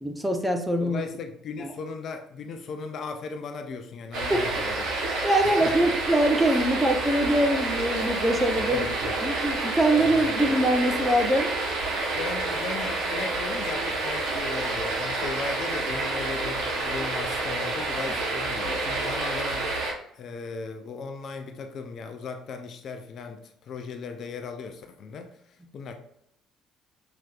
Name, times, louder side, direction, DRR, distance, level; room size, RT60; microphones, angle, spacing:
voice 1, 0.0-1.0 1.6-1.7 4.3-4.5 5.2-8.9 9.2-11.5, right 1 dB, 5° right, 5 dB, 0.9 m, -23 dB
voice 2, 0.8-4.9 5.4-5.7 6.5-6.6 8.7-9.2 10.0-10.3 12.1-19.8 20.1-25.9, left 4 dB, 55° left, 6 dB, 0.5 m, -37 dB
sound 1, 4.1-19.9, right 2 dB, 65° right, 1.2 m, -29 dB
5.9 x 3.1 x 2.4 m, 0.75 s
hypercardioid pair, 55°, 0 cm